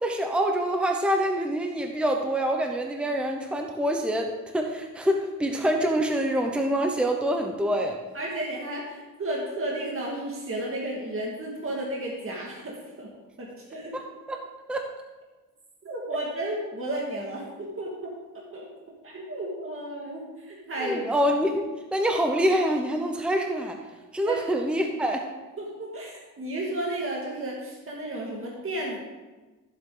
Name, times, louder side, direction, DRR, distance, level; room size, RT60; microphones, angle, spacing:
voice 1, 0.0-8.0 13.9-14.0 14.3-14.4 14.7-14.8 20.8-23.8 24.1-25.2, equal, 5° right, 3 dB, 0.8 m, -26 dB
voice 2, 8.1-13.1 13.4-13.9 15.8-18.1 18.5-18.7 19.0-21.2 24.3-24.4 25.6-29.0, right 1 dB, 40° right, -3 dB, 2.0 m, -33 dB
14.0 x 7.8 x 3.8 m, 1.2 s
wide cardioid pair, 135°, 32 cm